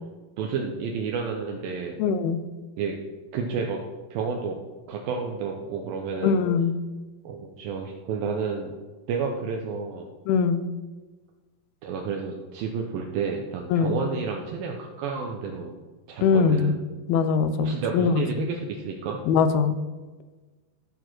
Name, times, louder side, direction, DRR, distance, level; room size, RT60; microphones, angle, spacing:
voice 1, 0.4-2.0 2.8-3.0 3.3-3.8 4.1-4.6 4.9-6.4 7.2-8.7 9.1-10.1 11.8-15.8 16.1-16.8 17.6-19.2, right 5 dB, 75° right, 1 dB, 2.5 m, -30 dB
voice 2, 2.0-2.4 6.2-6.7 10.3-10.6 13.7-14.0 16.2-16.7 17.1-18.5 19.3-19.8, left 6 dB, 85° left, 10 dB, 2.6 m, -22 dB
13.5 x 4.8 x 6.0 m, 1.3 s
omnidirectional pair, 4.3 m